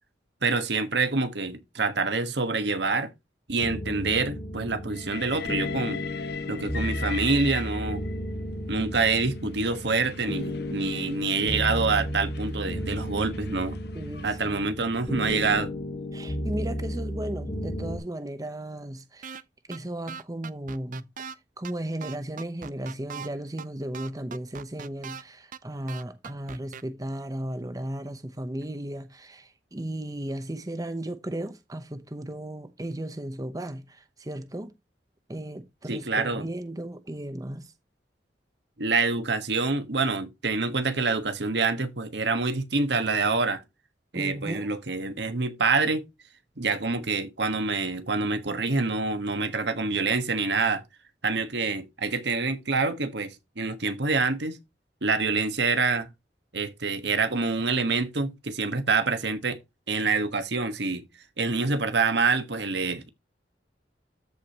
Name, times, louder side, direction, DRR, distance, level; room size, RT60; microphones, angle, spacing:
voice 1, 0.4-3.1 3.5-6.0 6.5-8.0 8.7-13.8 14.2-15.7 35.9-36.5 38.8-43.6 44.1-46.1 46.6-50.8 51.2-54.6 55.0-56.1 56.5-59.6 59.9-61.0 61.4-63.1, right 4 dB, 70° right, 1.3 m, -26 dB
sound 1, 3.6-18.0, equal, 25° left, 1.9 m, -33 dB
Train, 4.9-8.3 9.2-14.4, left 8 dB, 60° left, 0.9 m, -41 dB
voice 2, 13.9-14.7 16.1-19.4 19.7-21.1 21.6-34.7 35.3-37.7 44.1-44.7, right 1 dB, 20° right, 0.8 m, -35 dB
sound 2, 19.2-19.4 19.7-19.8 20.1-21.3 21.6-21.7 22.0-23.3 23.6-23.7 23.9-25.2 25.5-25.6 25.9-26.8, right 6 dB, 45° right, 0.5 m, -39 dB
13.5 x 5.0 x 2.9 m
head